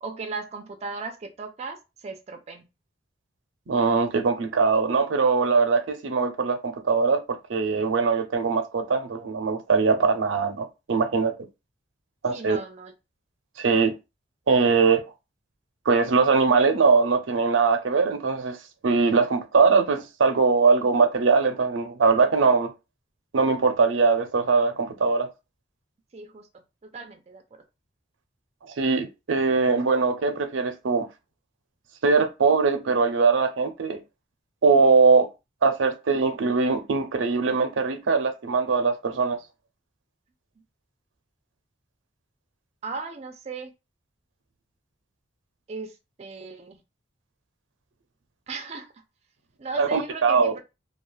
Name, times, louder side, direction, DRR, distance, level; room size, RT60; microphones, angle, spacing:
voice 1, 0.0-2.6 12.3-12.9 26.1-26.5 26.9-27.6 42.8-43.7 45.7-45.9 46.2-46.8 48.5-48.9 49.6-50.6, right 4 dB, 35° right, 0.4 m, -36 dB
voice 2, 3.7-11.3 12.2-12.6 13.6-13.9 14.5-15.0 15.9-18.6 18.8-22.7 23.3-25.3 28.8-31.1 32.0-34.0 34.6-35.3 35.6-39.4 49.8-50.5, right 4 dB, 90° right, 0.5 m, -21 dB
2.3 x 2.3 x 3.1 m
head